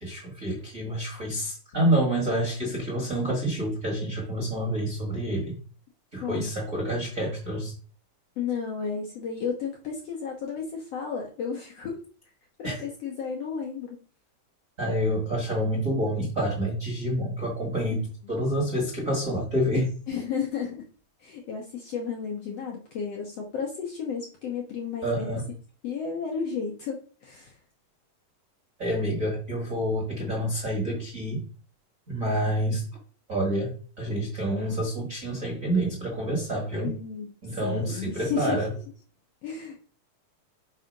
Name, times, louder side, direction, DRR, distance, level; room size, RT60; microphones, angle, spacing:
voice 1, 0.0-5.6 6.1-7.7 12.6-12.7 14.8-19.9 25.0-25.4 28.8-31.4 32.1-32.9 33.3-36.9 37.4-38.7, right 1 dB, 35° right, -1 dB, 1.5 m, -28 dB
voice 2, 6.2-6.5 8.4-12.0 12.6-14.0 17.9-18.1 18.3-18.4 19.7-19.8 20.1-20.8 21.2-25.4 25.8-27.5 36.8-38.6 39.4-39.7, left 6 dB, 60° left, 0 dB, 1.8 m, -33 dB
5.6 x 4.1 x 5.3 m, 0.40 s
omnidirectional pair, 4.0 m